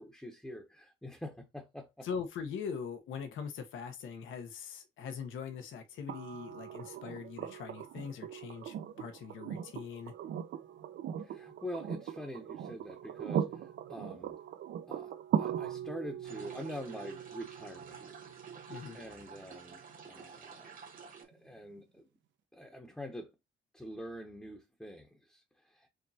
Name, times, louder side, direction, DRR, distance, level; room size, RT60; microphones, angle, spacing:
voice 1, 0.0-2.1 11.2-14.3 14.9-15.1 15.4-18.3 18.6-20.7 21.0-22.0 22.5-23.3 23.7-25.9, equal, 5° left, 0.8 m, -45 dB
voice 2, 2.0-10.1 18.7-19.0, left 6 dB, 80° left, 1.0 m, -42 dB
sound 1, 6.1-20.0 21.8-21.9, right 9 dB, 65° right, 0.7 m, -40 dB
sound 2, 16.2-21.2, right 6 dB, 45° right, 1.4 m, -50 dB
4.9 x 3.1 x 2.8 m
cardioid pair, 90°, 20 cm